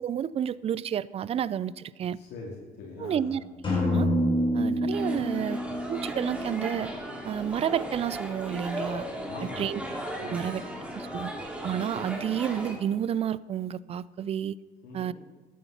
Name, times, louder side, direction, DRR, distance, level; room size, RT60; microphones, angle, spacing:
voice 1, 0.0-2.2 3.0-3.4 3.9-4.1 4.5-5.6 5.9-6.9 7.2-9.1 9.6-9.8 10.2-10.6 10.9-11.3 11.6-14.6 14.9-15.1, right 9 dB, 35° right, 19 dB, 0.4 m, -30 dB
voice 2, 2.1-3.4 9.3-9.9 10.2-10.7 11.2-11.4 14.8-15.1, left 3 dB, 85° left, -3 dB, 2.9 m, -42 dB
sound 1, 3.6-7.4, equal, 30° left, 5.0 m, -28 dB
sound 2, 4.9-12.7, equal, 5° right, 2.6 m, -37 dB
13.0 x 9.4 x 5.8 m, 1.3 s
cardioid pair, 110°, 17 cm